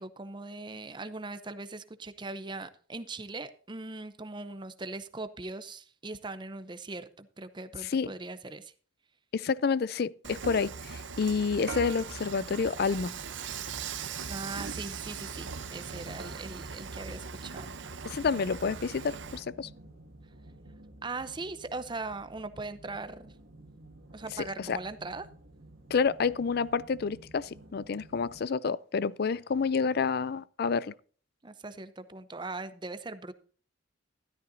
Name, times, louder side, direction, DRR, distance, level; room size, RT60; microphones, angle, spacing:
voice 1, 0.0-8.7 14.3-17.7 21.0-23.3 24.1-25.3 31.4-33.3, right 3 dB, 25° right, 0.6 m, -40 dB
voice 2, 7.8-8.1 9.3-13.1 18.0-19.7 24.6-24.8 25.9-30.9, left 5 dB, 50° left, 0.4 m, -29 dB
Dishes pots and pans / Frying (food), 10.2-19.4, right 6 dB, 70° right, 0.8 m, -40 dB
sound 1, 13.7-28.4, right 1 dB, 85° right, 1.9 m, -52 dB
13.5 x 12.5 x 2.7 m
head